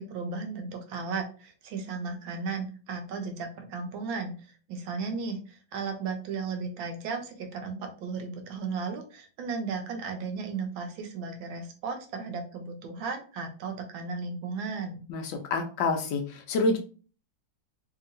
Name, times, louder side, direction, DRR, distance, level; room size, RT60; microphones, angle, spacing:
voice 1, 0.0-15.0, right 4 dB, 85° right, 4 dB, 1.5 m, -35 dB
voice 2, 15.5-16.2 16.5-16.8, left 3 dB, 75° left, 4 dB, 1.3 m, -26 dB
3.5 x 2.8 x 2.6 m, 0.37 s
omnidirectional pair, 2.1 m